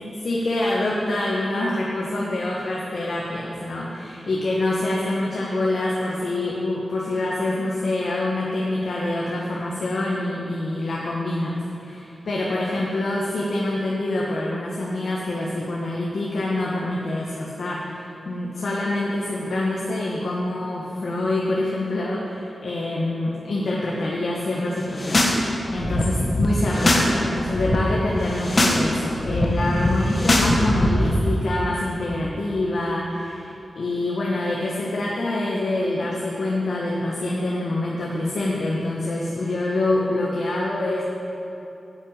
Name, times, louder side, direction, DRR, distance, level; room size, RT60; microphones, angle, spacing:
voice 1, 0.0-25.2 25.7-41.0, left 2 dB, 70° left, -4 dB, 1.5 m, -26 dB
sound 1, 24.8-25.4 25.7-27.1 27.4-27.8 28.2-28.8 29.1-31.1, left 1 dB, 35° left, 1.5 m, -21 dB
10.0 x 8.2 x 9.0 m, 3.0 s
wide cardioid pair, 100°, 0 cm